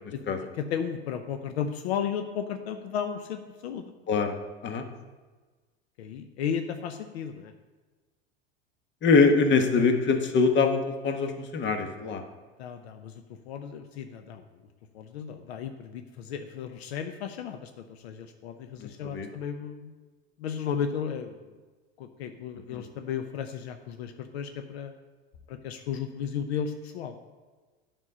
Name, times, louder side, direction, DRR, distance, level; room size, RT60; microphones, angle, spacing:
voice 1, 0.1-3.9 4.7-4.8 6.0-7.5 12.6-14.5 14.9-19.9 20.4-21.5 22.0-24.9 25.5-27.2, left 7 dB, 70° left, 7 dB, 0.8 m, -34 dB
voice 2, 9.0-12.2 18.8-19.3 22.7-22.8, left 4 dB, 35° left, 6 dB, 1.3 m, -23 dB
9.7 x 5.4 x 5.4 m, 1.3 s
hypercardioid pair, 85°, 33 cm